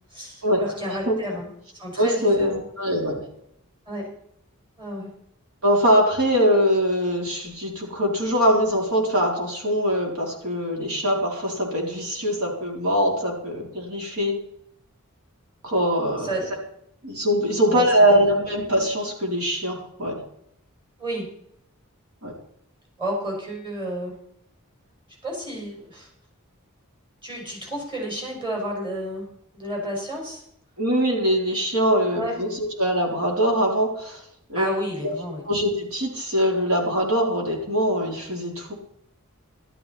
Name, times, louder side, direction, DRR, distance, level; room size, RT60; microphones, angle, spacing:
voice 1, 0.1-2.7 3.9-4.1 4.8-5.1 16.2-16.6 17.7-17.8 18.1-18.4 21.0-21.3 23.0-24.2 25.2-26.1 27.2-29.3 29.5-30.4 32.1-32.4 34.5-35.4, right 1 dB, 25° right, -1 dB, 5.4 m, -31 dB
voice 2, 2.0-3.2 5.6-14.4 15.6-16.3 17.0-20.2 22.2-22.3 30.8-34.2 34.5-34.6 35.0-35.1 35.5-38.7, equal, 80° right, -1 dB, 4.1 m, -22 dB
13.5 x 13.0 x 4.3 m, 0.72 s
head